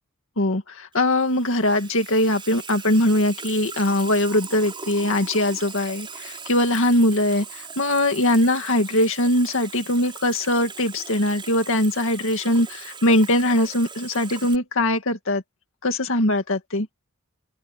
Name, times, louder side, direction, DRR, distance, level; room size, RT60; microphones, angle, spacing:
voice 1, 0.4-15.4 15.8-16.9, left 1 dB, 65° left, 2.1 m, -21 dB
Water tap faucet / Sink (filling or washing), 0.9-14.6, right 5 dB, 25° right, 4.9 m, -39 dB
open air
head